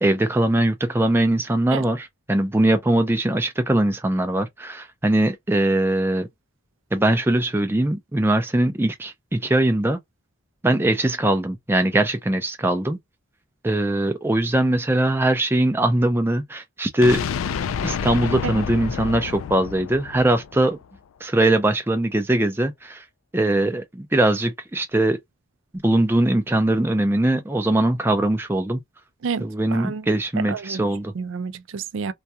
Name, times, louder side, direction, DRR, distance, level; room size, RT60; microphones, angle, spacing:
voice 1, 0.0-6.3 6.9-10.0 10.6-13.0 13.6-17.3 17.8-20.8 21.2-23.0 23.3-25.2 25.7-28.8 29.4-31.1, right 1 dB, 10° right, 0.4 m, -21 dB
sound 1, 17.0-21.0, left 6 dB, 80° left, 0.3 m, -29 dB
voice 2, 29.2-30.1 30.4-30.8 31.1-32.1, right 5 dB, 70° right, 0.4 m, -30 dB
2.3 x 2.2 x 2.7 m
head